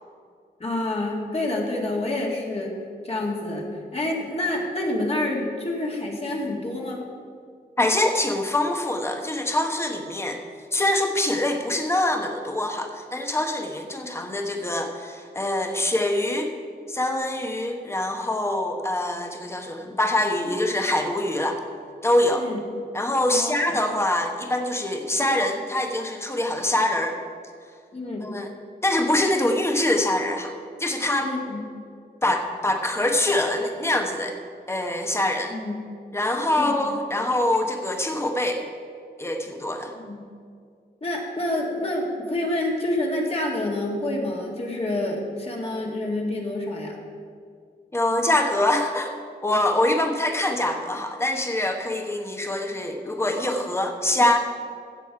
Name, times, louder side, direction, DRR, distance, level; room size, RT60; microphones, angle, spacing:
voice 1, 0.6-2.7 3.0-3.6 3.9-7.1 22.4-22.6 23.3-23.5 27.9-28.4 31.2-31.6 35.5-35.7 36.5-37.0 40.0-40.3 41.0-47.0, left 1 dB, 35° left, -2 dB, 2.0 m, -28 dB
voice 2, 7.8-10.4 10.7-16.5 16.9-21.6 22.0-22.5 22.9-27.2 28.2-28.5 28.8-30.5 30.8-31.3 32.2-34.3 34.7-35.5 36.1-38.6 39.2-39.9 47.9-49.2 49.4-54.4, left 1 dB, 15° left, 4 dB, 1.1 m, -24 dB
16.5 x 6.5 x 4.7 m, 2.2 s
wide cardioid pair, 95°, 17 cm